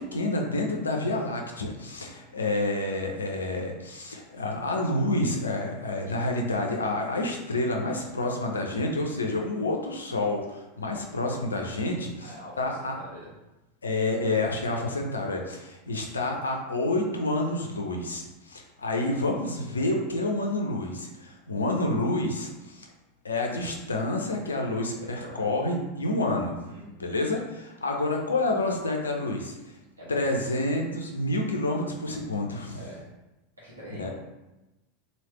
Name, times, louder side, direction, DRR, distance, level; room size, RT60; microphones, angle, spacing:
voice 1, 0.0-13.0 13.8-22.9 23.2-26.6 27.0-29.5 30.1-32.8 34.0-34.1, left 2 dB, 80° left, 1 dB, 0.5 m, -28 dB
voice 2, 12.2-13.3 19.1-19.2 24.7-25.5 26.6-27.0 30.0-30.5 32.7-33.0 33.6-34.1, equal, 85° right, -7 dB, 1.2 m, -44 dB
3.2 x 2.8 x 3.1 m, 1.0 s
figure-of-eight pair, 85°, 0 cm